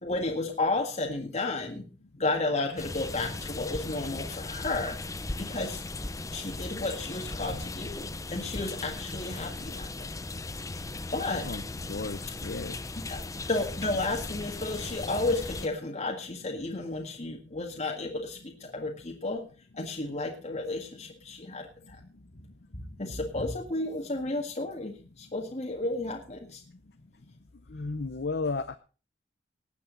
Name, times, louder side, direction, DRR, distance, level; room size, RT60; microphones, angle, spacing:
voice 1, 0.0-1.8 2.2-5.0 5.4-5.8 6.3-10.1 11.1-11.5 13.1-13.2 13.5-19.4 19.7-22.0 22.7-26.6, left 2 dB, 40° left, 1 dB, 1.8 m, -32 dB
sound 1, 2.8-15.7, left 2 dB, 20° left, 0.6 m, -37 dB
voice 2, 11.9-12.7 27.7-28.8, left 3 dB, 65° left, 10 dB, 0.8 m, -33 dB
19.5 x 8.5 x 4.0 m, 0.35 s
head